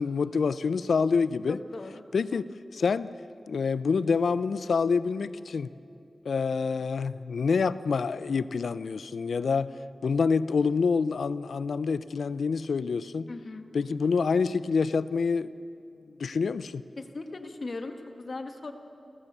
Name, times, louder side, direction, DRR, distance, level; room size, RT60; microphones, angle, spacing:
voice 1, 0.0-1.6 2.1-3.1 3.5-5.7 6.2-9.7 10.0-13.3 13.7-15.5 16.1-16.8, left 5 dB, 90° left, 16 dB, 0.5 m, -27 dB
voice 2, 1.5-2.0 13.3-13.6 17.0-18.7, left 3 dB, 55° left, 6 dB, 1.5 m, -38 dB
30.0 x 14.5 x 6.8 m, 2.6 s
wide cardioid pair, 75°, 0 cm